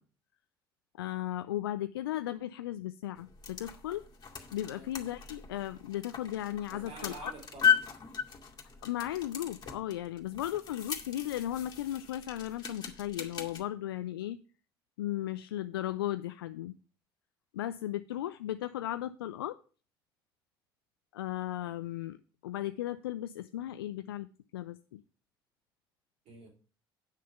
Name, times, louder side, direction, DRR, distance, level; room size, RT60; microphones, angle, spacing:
voice 1, 1.0-4.0 4.5-7.3 8.8-14.4 15.0-16.7 17.5-19.6 21.1-22.2 22.4-24.3 24.5-25.0, left 13 dB, 80° left, 12 dB, 0.4 m, -36 dB
sound 1, 3.2-13.6, left 7 dB, 35° left, 2.2 m, -36 dB
voice 2, 6.7-7.8 26.3-26.5, right 3 dB, 60° right, 4 dB, 3.6 m, -48 dB
9.2 x 6.4 x 5.7 m, 0.38 s
hypercardioid pair, 55°, 12 cm